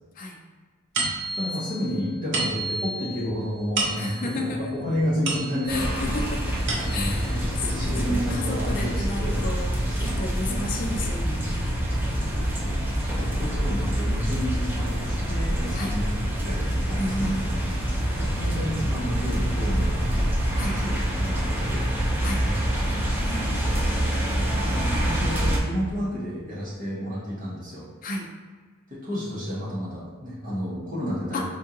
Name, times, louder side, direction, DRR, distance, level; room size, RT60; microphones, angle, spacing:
sound 1, 0.9-5.9 6.4-7.3, right 2 dB, 60° right, 0.7 m, -31 dB
voice 1, 1.3-6.3 6.8-9.4 9.9-10.7 12.6-12.7 13.1-17.3 18.1-23.8 24.4-27.8 28.9-31.5, equal, 40° right, -9 dB, 1.2 m, -31 dB
voice 2, 4.0-4.8 5.7-6.6 6.9-7.4 7.7-11.7 15.7-16.0 17.0-17.8 20.6-20.8 22.2-22.4 23.2-24.6 28.0-28.3 31.3-31.5, left 1 dB, 40° left, 1 dB, 0.4 m, -33 dB
sound 2, 5.7-25.6, equal, 10° right, 0.6 m, -26 dB
4.4 x 2.4 x 2.8 m, 1.4 s
head